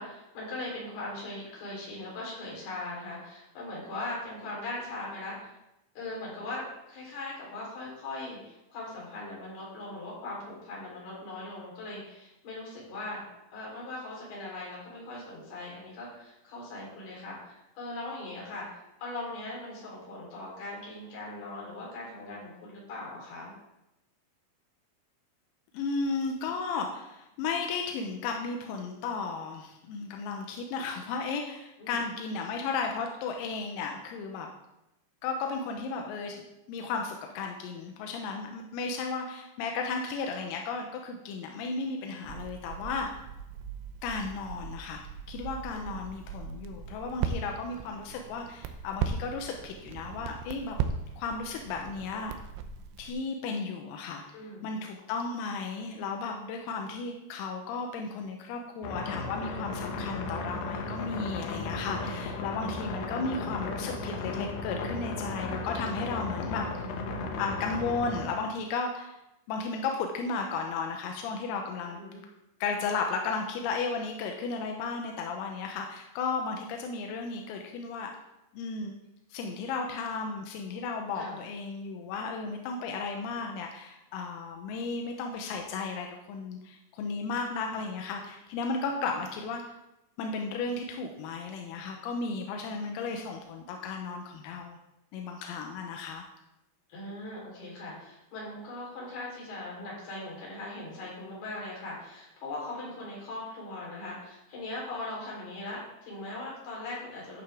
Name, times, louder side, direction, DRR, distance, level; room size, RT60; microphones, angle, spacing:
voice 1, 0.0-5.6 6.0-13.2 13.5-23.5 31.8-32.1 45.7-46.0 54.3-54.7 71.9-72.2 81.2-81.4 96.9-107.4, left 2 dB, 50° left, -4 dB, 5.8 m, -40 dB
voice 2, 25.7-34.5 35.2-43.1 44.0-45.0 45.3-50.8 51.2-52.4 53.0-54.4 54.6-66.6 67.4-69.2 69.5-72.0 72.6-78.1 78.5-78.9 79.3-89.8 90.2-94.8 95.1-96.2, left 4 dB, 90° left, 2 dB, 3.7 m, -34 dB
Crackle, 42.2-53.1, right 7 dB, 80° right, 3.2 m, -38 dB
sound 1, 58.8-68.3, left 3 dB, 70° left, 2.8 m, -35 dB
13.5 x 9.1 x 3.7 m, 0.90 s
omnidirectional pair, 6.0 m